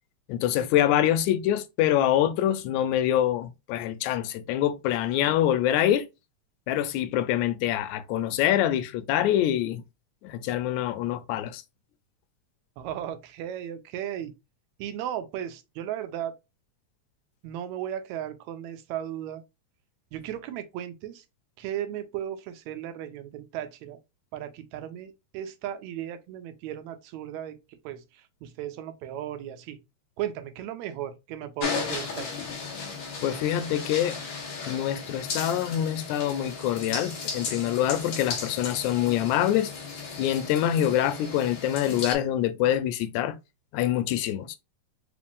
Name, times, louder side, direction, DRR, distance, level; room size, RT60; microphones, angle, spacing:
voice 1, 0.3-6.1 6.7-9.8 10.2-11.6 32.7-32.9 33.2-34.2 34.7-39.7 40.2-43.4 43.7-44.6, left 11 dB, 90° left, 2.0 m, -25 dB
voice 2, 12.8-14.3 14.8-16.3 17.4-19.4 20.1-21.2 21.6-24.0 24.3-27.6 27.9-28.0 28.4-29.8 30.2-32.5, right 11 dB, 85° right, 1.9 m, -35 dB
sound 1, 31.6-42.1, left 5 dB, 60° left, 1.4 m, -35 dB
4.8 x 3.5 x 2.4 m
omnidirectional pair, 3.3 m